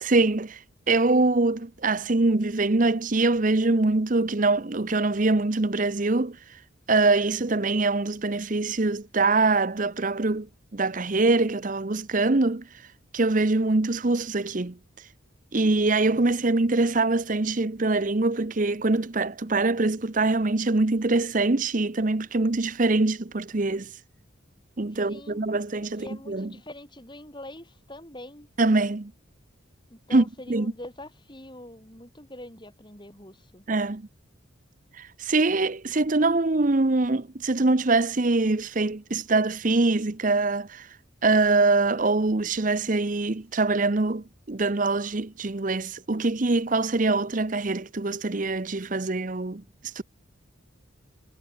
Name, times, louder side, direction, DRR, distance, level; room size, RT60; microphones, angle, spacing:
voice 1, 0.0-6.6 6.9-10.5 10.7-12.9 13.1-15.1 15.5-24.0 24.8-26.5 28.6-29.1 30.1-30.7 33.7-34.1 34.9-41.0 41.2-50.0, right 3 dB, 40° right, 0.8 m, -24 dB
voice 2, 24.9-25.4 25.9-28.5 29.9-33.6, left 1 dB, 20° left, 5.6 m, -44 dB
head